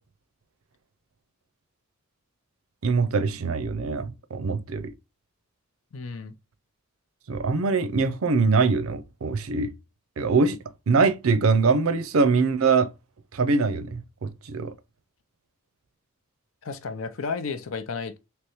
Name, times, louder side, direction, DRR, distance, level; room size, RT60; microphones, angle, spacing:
voice 1, 2.8-4.9 7.3-9.7 10.2-10.6 10.9-12.9 13.3-14.7, right 4 dB, 75° right, 0.5 m, -23 dB
voice 2, 5.9-6.4 16.6-18.2, left 4 dB, 70° left, 0.6 m, -32 dB
3.4 x 3.0 x 3.0 m
head